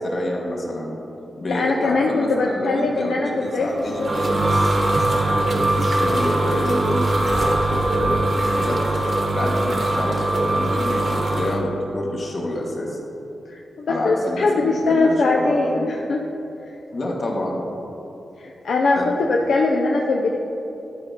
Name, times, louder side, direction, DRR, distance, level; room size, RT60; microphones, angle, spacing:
voice 1, 0.0-1.0 1.4-8.2 8.6-8.8 9.3-13.0 13.9-15.9 16.9-17.6 19.0-19.1, left 1 dB, 50° left, -1 dB, 1.3 m, -28 dB
voice 2, 1.5-3.7 4.0-4.1 9.4-9.6 13.5-16.2 18.4-20.4, left 3 dB, 80° left, 0 dB, 0.5 m, -21 dB
sound 1, 3.6-11.6, right 2 dB, 50° right, 1.1 m, -21 dB
11.5 x 4.5 x 4.1 m, 3.0 s
cardioid pair, 90°, 0 cm